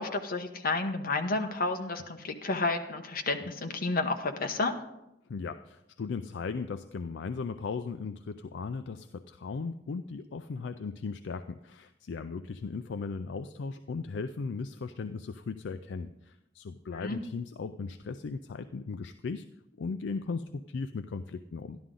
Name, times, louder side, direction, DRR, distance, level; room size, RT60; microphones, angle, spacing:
voice 1, 0.0-4.8 16.9-17.2, left 3 dB, 50° left, 5 dB, 1.0 m, -31 dB
voice 2, 5.3-19.5 19.8-21.8, left 4 dB, 70° left, 10 dB, 0.4 m, -37 dB
12.5 x 11.5 x 3.8 m, 0.87 s
head